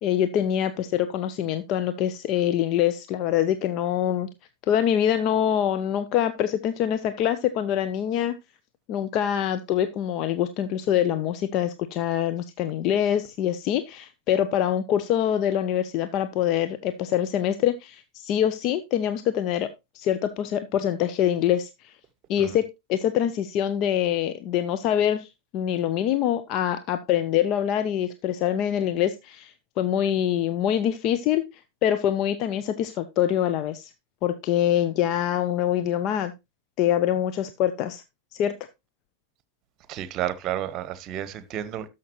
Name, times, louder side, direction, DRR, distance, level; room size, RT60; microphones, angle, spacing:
voice 1, 0.0-4.3 4.7-8.4 8.9-21.9 22.3-22.6 22.9-33.9 34.2-36.3 36.8-38.0 38.3-38.5, left 10 dB, 45° left, 0.7 m, -25 dB
voice 2, 39.9-41.9, right 11 dB, 35° right, 1.1 m, -31 dB
13.0 x 5.8 x 3.0 m
figure-of-eight pair, 90°, 0 cm